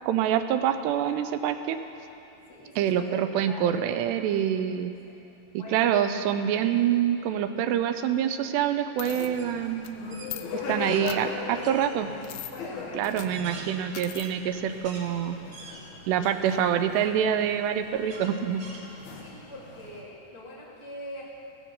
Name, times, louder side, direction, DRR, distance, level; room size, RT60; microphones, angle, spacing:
voice 1, 0.1-1.8 2.8-4.9 5.5-9.8 10.7-12.1 13.0-15.4 16.1-18.6, right 9 dB, 90° right, 8 dB, 2.8 m, -26 dB
voice 2, 2.5-4.0 5.1-5.3 5.6-6.0 10.1-11.8 12.5-13.7 19.1-21.2, left 1 dB, 10° left, -7 dB, 2.2 m, -44 dB
sound 1, 9.0-9.3 9.8-9.9 10.2-10.4 11.1-11.2 12.2-12.5 13.0-13.3 13.9-14.3, left 15 dB, 85° left, 2.8 m, -39 dB
sound 2, 9.0-20.0, left 4 dB, 65° left, 3.1 m, -40 dB
sound 3, 9.3-9.6 9.9-11.1 11.6-11.9 12.5-12.6 13.1-15.1 15.5-16.2 16.7-16.8 18.1-19.3, right 3 dB, 50° right, 1.7 m, -45 dB
15.5 x 14.5 x 5.7 m, 2.7 s
omnidirectional pair, 4.9 m